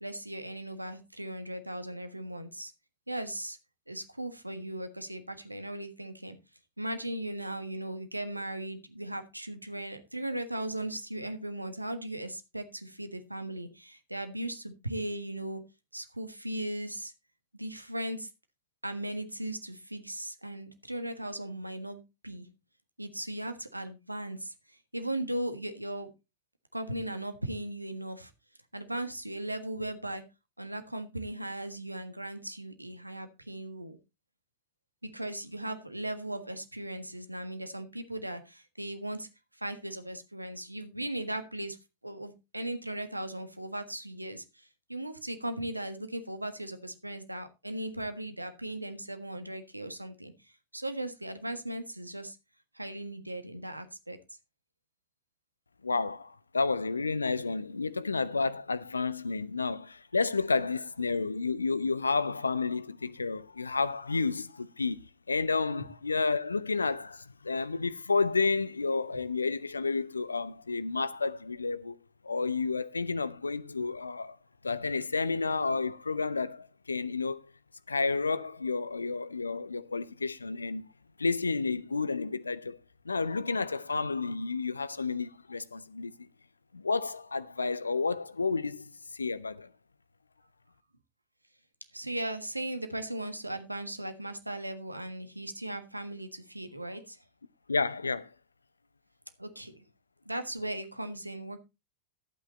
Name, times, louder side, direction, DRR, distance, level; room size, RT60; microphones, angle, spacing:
voice 1, 0.0-2.7 3.1-3.6 3.9-6.4 6.8-15.6 15.9-17.1 17.5-18.3 18.8-22.5 23.0-26.1 26.7-28.3 28.7-30.2 30.6-34.0 35.0-39.3 39.5-41.8 42.0-52.4 52.7-54.2 91.9-97.2 99.4-99.8 100.2-101.6, right 1 dB, 85° right, 1.5 m, -37 dB
voice 2, 55.8-65.0 65.3-72.0 72.2-74.4 74.6-77.4 77.9-80.8 81.2-82.8 83.0-86.1 86.7-89.7 97.7-98.3, left 4 dB, 80° left, 0.7 m, -31 dB
12.0 x 8.5 x 4.2 m
figure-of-eight pair, 90°, 0 cm